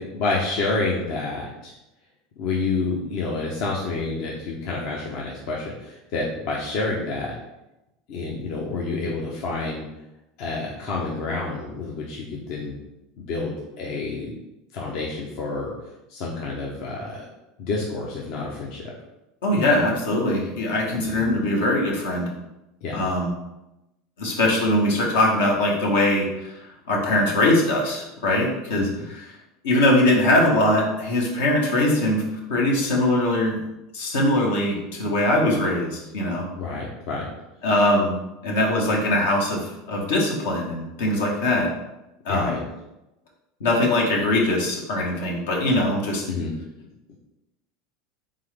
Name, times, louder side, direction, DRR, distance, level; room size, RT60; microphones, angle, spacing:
voice 1, 0.0-1.7 2.4-7.3 8.1-9.8 10.4-12.8 13.2-14.3 14.7-15.7 16.1-17.3 17.6-18.8 21.0-21.3 22.8-23.0 28.8-29.0 36.6-37.3 42.3-42.6 46.3-46.5, left 3 dB, 60° left, -3 dB, 0.8 m, -28 dB
voice 2, 19.4-22.3 22.9-23.3 24.2-26.5 26.9-29.2 29.6-32.2 32.5-33.6 33.9-36.5 37.6-38.1 38.4-41.7 42.2-42.6 43.6-46.2, left 1 dB, 80° left, -2 dB, 1.1 m, -21 dB
3.8 x 3.7 x 3.3 m, 0.95 s
hypercardioid pair, 90°, 0 cm